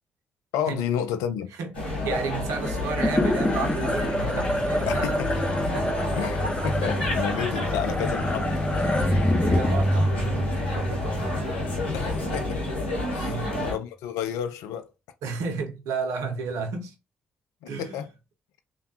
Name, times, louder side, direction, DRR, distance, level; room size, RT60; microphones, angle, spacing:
voice 1, 0.5-1.5 4.9-5.5 6.1-8.5 11.9-12.6 13.1-14.9 17.6-18.1, left 8 dB, 70° left, 0.4 m, -31 dB
voice 2, 1.6-5.2 5.7-6.1 9.1-11.3 13.2-13.7 15.2-16.9 17.7-18.0, right 4 dB, 70° right, 0.7 m, -32 dB
sound 1, 1.7-13.7, left 2 dB, 85° left, 0.8 m, -30 dB
sound 2, 2.5-13.0, left 1 dB, 20° left, 0.8 m, -27 dB
3.3 x 2.2 x 2.7 m
hypercardioid pair, 40°, 6 cm